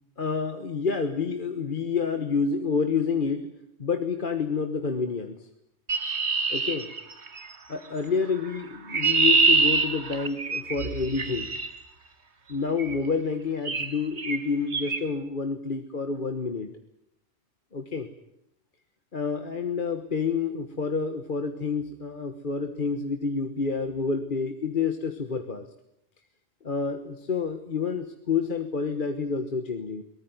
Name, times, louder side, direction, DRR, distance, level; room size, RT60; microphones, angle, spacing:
voice 1, 0.2-3.5 3.8-5.5 6.5-6.9 7.7-11.6 12.5-16.7 17.7-18.1 19.1-25.7 26.6-30.0, left 5 dB, 50° left, 7 dB, 1.5 m, -28 dB
Chirp tweet, 5.9-7.5 8.5-11.7 12.8-13.1 13.6-13.9 14.2-14.4 14.7-15.0, right 4 dB, 85° right, 2.1 m, -25 dB
23.0 x 19.0 x 9.5 m, 0.79 s
omnidirectional pair, 1.1 m